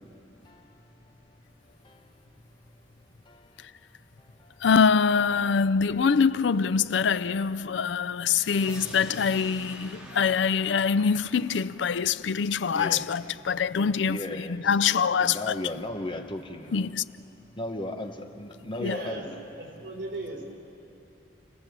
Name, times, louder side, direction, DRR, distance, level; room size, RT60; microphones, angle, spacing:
voice 1, 4.6-15.5 16.7-17.0 18.8-19.0, left 6 dB, 80° left, 0.5 m, -24 dB
sound 1, 8.3-13.2, equal, 5° right, 2.2 m, -46 dB
voice 2, 12.7-13.1 14.1-14.6 15.2-16.8 17.6-19.3, left 1 dB, 25° left, 1.1 m, -35 dB
voice 3, 18.7-19.2 19.5-20.5, right 2 dB, 80° right, 4.1 m, -37 dB
29.0 x 19.0 x 7.4 m
head